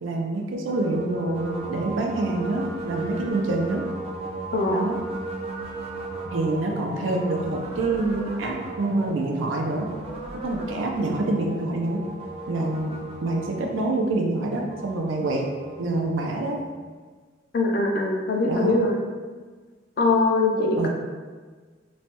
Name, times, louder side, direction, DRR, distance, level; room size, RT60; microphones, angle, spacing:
voice 1, 0.0-3.8 4.7-5.0 6.3-9.9 10.4-12.0 12.5-15.4 15.8-16.6 18.5-18.8 20.8-20.9, right 2 dB, 90° right, 1 dB, 0.5 m, -26 dB
sound 1, 0.7-16.9, right 2 dB, 30° right, 0.4 m, -36 dB
voice 2, 4.5-4.9 17.5-19.0 20.0-20.9, left 2 dB, 50° left, 1 dB, 0.4 m, -22 dB
3.1 x 2.2 x 2.8 m, 1.5 s
head